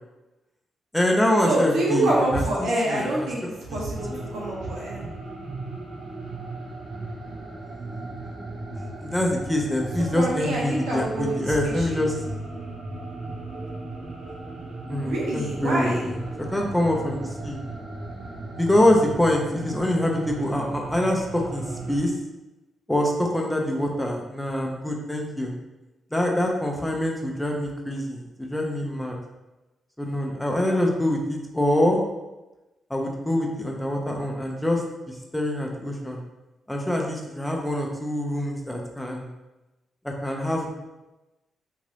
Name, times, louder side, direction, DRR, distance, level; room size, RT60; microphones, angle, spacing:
voice 1, 0.9-3.3 3.7-3.8 4.1-4.2 9.0-12.2 14.9-17.6 18.6-22.1 22.9-25.5 26.1-29.2 30.0-32.0 32.9-36.2 36.7-39.3 40.0-40.7, left 1 dB, 10° left, 0 dB, 0.7 m, -25 dB
voice 2, 1.4-3.4 3.7-5.0 10.1-12.0 15.0-16.0, right 1 dB, 80° right, -5 dB, 0.9 m, -26 dB
sound 1, 3.9-22.0, right 2 dB, 55° right, 1.0 m, -36 dB
2.8 x 2.5 x 3.2 m, 1.0 s
supercardioid pair, 45°, 0 cm